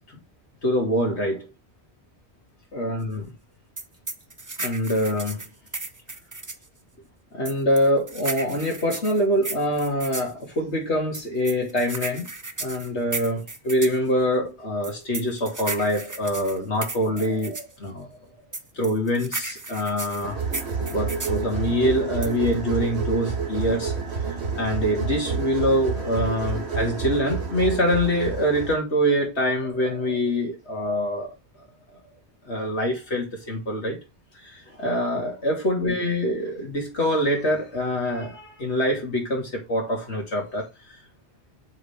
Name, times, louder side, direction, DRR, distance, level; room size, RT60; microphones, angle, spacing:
voice 1, 0.6-1.5 2.7-3.3 4.6-5.4 7.3-12.3 12.6-18.1 18.8-20.4 20.9-23.9 24.5-31.3 32.5-34.0 34.4-41.0, equal, 85° left, 3.0 m, -25 dB
sound 1, 3.8-6.7 7.5-10.3 11.1-14.0 14.8-17.7 18.5-21.4 22.2-22.5, right 3 dB, 20° right, 0.6 m, -34 dB
sound 2, 20.2-28.8, right 5 dB, 75° right, 1.8 m, -29 dB
7.0 x 5.0 x 3.5 m
omnidirectional pair, 1.1 m